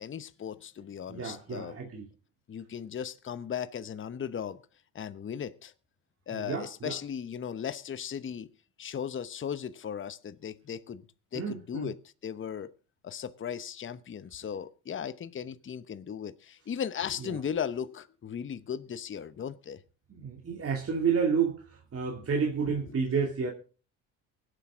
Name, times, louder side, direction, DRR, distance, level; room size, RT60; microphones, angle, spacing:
voice 1, 0.0-1.8 2.5-4.6 4.9-5.7 6.3-8.5 8.8-11.1 11.3-12.7 13.0-19.8 22.7-22.8, left 8 dB, 30° left, 0.9 m, -37 dB
voice 2, 1.1-2.1 6.3-7.0 11.3-11.9 17.2-17.4 20.1-23.5, right 6 dB, 35° right, 2.7 m, -30 dB
23.5 x 8.2 x 3.7 m
hypercardioid pair, 65°, 40 cm